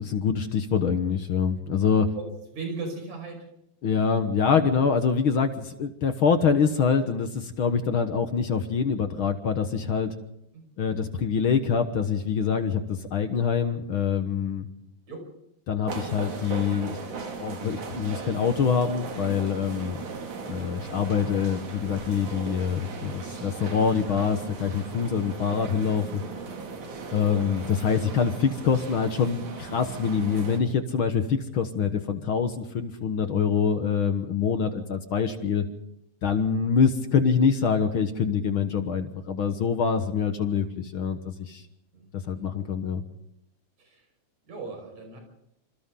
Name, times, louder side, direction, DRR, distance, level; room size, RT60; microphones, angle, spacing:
voice 1, 0.0-2.1 3.8-10.1 10.8-14.7 15.7-20.0 20.5-26.2 27.1-35.6 36.2-41.6 42.1-43.0, left 6 dB, 55° left, 7 dB, 1.6 m, -25 dB
voice 2, 2.5-3.5 10.5-10.7 15.1-15.3 27.2-27.6 41.9-42.5 43.8-44.0 44.5-45.2, right 3 dB, 65° right, 3 dB, 6.7 m, -38 dB
sound 1, 15.9-30.6, right 4 dB, 80° right, 3.9 m, -37 dB
27.0 x 26.5 x 3.8 m, 0.79 s
omnidirectional pair, 3.4 m